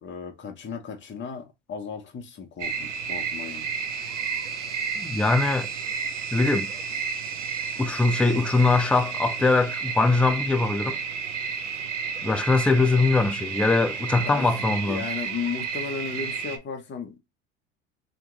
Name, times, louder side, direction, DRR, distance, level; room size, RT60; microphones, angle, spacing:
voice 1, 0.0-3.7 14.2-17.2, left 6 dB, 30° left, 1.2 m, -35 dB
sound 1, 2.6-16.6, right 6 dB, 90° right, 0.8 m, -31 dB
voice 2, 5.0-5.7 6.3-6.7 7.8-11.0 12.2-15.0, left 3 dB, 5° left, 0.4 m, -22 dB
3.5 x 3.0 x 3.8 m
hypercardioid pair, 70°, 36 cm